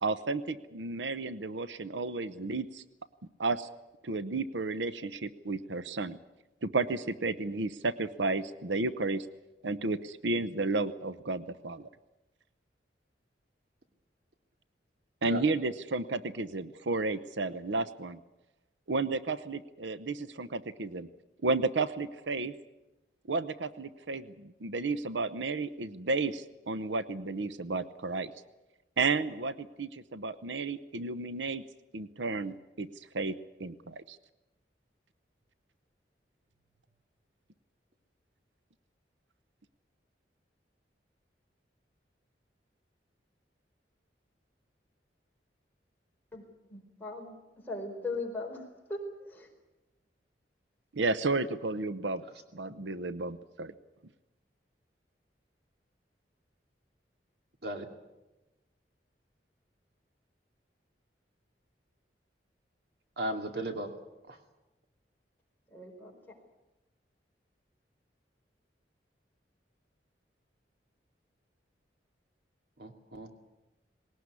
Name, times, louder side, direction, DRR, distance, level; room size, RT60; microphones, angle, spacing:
voice 1, 0.0-2.8 3.4-3.7 4.0-6.2 6.6-9.3 9.6-11.9 15.2-18.2 18.9-21.1 21.4-22.5 23.3-28.3 29.0-31.6 31.9-32.9 33.1-33.3 33.6-34.2 50.9-52.2 52.5-53.7, right 3 dB, 90° right, 13 dB, 0.8 m, -32 dB
voice 2, 46.3-47.4 47.6-49.5 51.3-51.4 65.7-66.1, left 2 dB, 10° left, -1 dB, 4.7 m, -39 dB
voice 3, 63.2-63.9 64.3-64.4 72.8-73.4, right 1 dB, 65° right, 4 dB, 2.4 m, -36 dB
20.0 x 18.0 x 9.7 m, 1.0 s
head